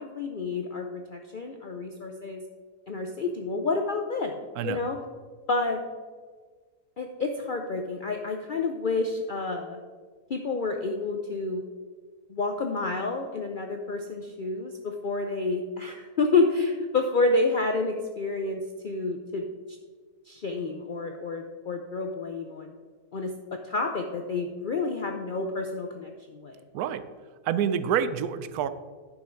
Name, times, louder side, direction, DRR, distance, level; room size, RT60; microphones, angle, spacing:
voice 1, 0.0-2.4 2.9-4.3 4.6-5.0 5.5-5.8 7.0-9.8 10.3-11.6 12.3-19.8 20.3-22.7 23.1-26.6, left 3 dB, 60° left, 4 dB, 0.5 m, -29 dB
voice 2, 27.5-28.7, right 8 dB, 80° right, 13 dB, 1.1 m, -27 dB
10.0 x 5.6 x 4.5 m, 1.5 s
omnidirectional pair, 1.6 m